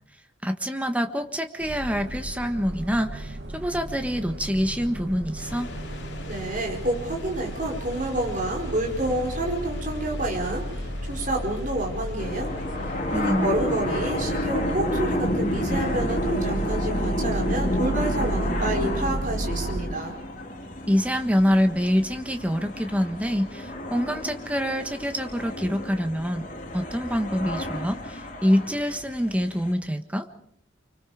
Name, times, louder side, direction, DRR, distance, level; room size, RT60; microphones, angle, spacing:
voice 1, 0.4-5.7 13.1-13.5 20.9-26.4 26.7-30.3, equal, 5° right, 7 dB, 1.5 m, -26 dB
sound 1, 1.6-19.8, right 1 dB, 55° right, 2.3 m, -33 dB
sound 2, 5.4-22.4, left 2 dB, 60° left, 2.9 m, -46 dB
voice 2, 6.3-12.5 12.8-20.1, right 1 dB, 40° right, 0 dB, 5.0 m, -29 dB
sound 3, 12.2-29.7, left 1 dB, 40° left, 4.0 m, -31 dB
29.5 x 24.5 x 5.1 m, 0.68 s
head